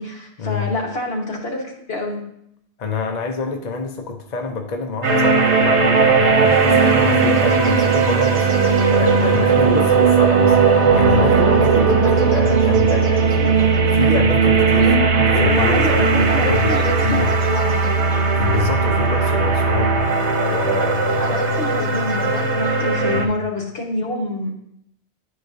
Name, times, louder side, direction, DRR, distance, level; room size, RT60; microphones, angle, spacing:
voice 1, 0.0-2.2 14.8-17.9 21.2-24.5, left 2 dB, 65° left, 0 dB, 1.5 m, -26 dB
voice 2, 2.8-14.9 15.4-17.3 18.3-20.1 20.4-21.4 23.1-23.3, left 4 dB, 50° left, 3 dB, 0.6 m, -26 dB
sound 1, 5.0-23.3, right 5 dB, 80° right, 1.2 m, -17 dB
10.5 x 4.7 x 2.6 m, 0.74 s
omnidirectional pair, 1.1 m